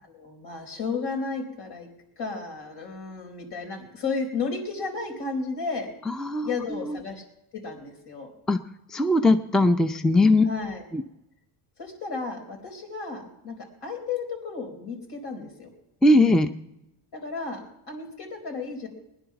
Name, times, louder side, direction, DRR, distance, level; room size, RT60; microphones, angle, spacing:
voice 1, 0.0-1.9 2.2-5.9 6.4-7.2 7.5-8.3 10.4-10.8 11.8-15.7 17.1-17.6 17.9-18.9, left 4 dB, 65° left, 3 dB, 4.4 m, -33 dB
voice 2, 6.1-6.5 8.5-8.6 8.9-10.4 10.9-11.0 16.0-16.5, left 2 dB, ahead, 10 dB, 0.5 m, -19 dB
20.5 x 10.5 x 5.9 m, 0.91 s
cardioid pair, 120°, 42 cm